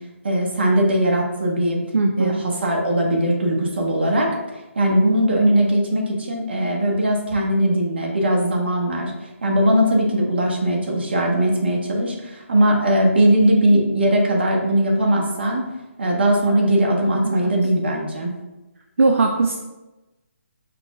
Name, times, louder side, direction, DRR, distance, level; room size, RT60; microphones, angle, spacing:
voice 1, 0.2-1.8 2.2-2.3 2.6-4.3 4.8-9.1 9.4-15.6 16.0-18.3, right 1 dB, 50° right, 0 dB, 1.0 m, -19 dB
voice 2, 1.9-2.4 17.2-17.5 19.0-19.5, right 3 dB, 65° right, 2 dB, 0.5 m, -19 dB
5.1 x 2.3 x 4.1 m, 1.0 s
hypercardioid pair, 175°, 7 cm